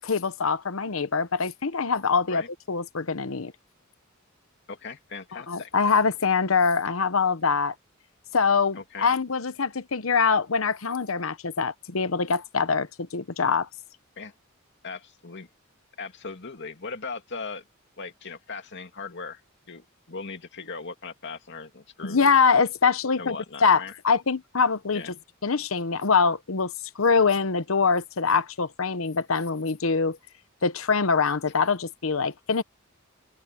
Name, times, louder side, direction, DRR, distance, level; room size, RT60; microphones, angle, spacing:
voice 1, 0.0-2.4 2.7-3.5 5.3-7.7 8.3-13.7 22.0-23.4 23.6-25.1 25.4-30.2 30.6-32.6, left 5 dB, 75° left, 0.9 m, -24 dB
voice 2, 4.7-5.7 8.8-9.1 14.2-14.3 14.8-15.5 16.0-17.6 18.0-19.4 19.7-22.2 23.2-23.9 24.9-25.1, left 4 dB, 60° left, 2.5 m, -38 dB
open air
head